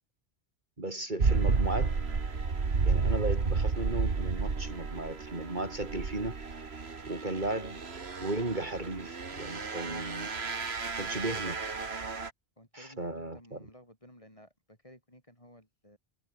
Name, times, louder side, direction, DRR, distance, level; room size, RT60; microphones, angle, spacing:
voice 1, 0.8-1.9 2.8-6.3 7.1-7.8 8.2-10.3 11.0-11.6 12.7-13.6, right 2 dB, 50° right, 3.3 m, -35 dB
sound 1, 1.2-12.3, right 4 dB, 85° right, 2.2 m, -32 dB
voice 2, 12.6-16.0, left 1 dB, 30° left, 7.5 m, -55 dB
omnidirectional pair, 1.0 m